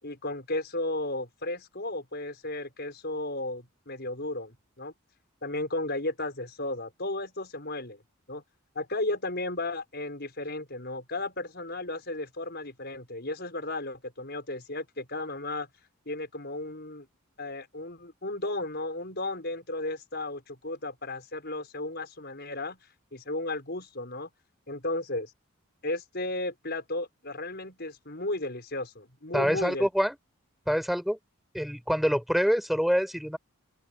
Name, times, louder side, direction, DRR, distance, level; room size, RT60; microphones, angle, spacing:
voice 1, 0.0-4.9 5.4-8.0 8.3-8.4 8.8-15.7 16.1-17.1 17.4-22.8 23.1-24.3 24.7-25.3 25.8-29.9, left 2 dB, 50° left, 5.9 m, -34 dB
voice 2, 29.3-30.2 30.7-31.2 31.5-33.4, equal, ahead, 4.8 m, -26 dB
open air
head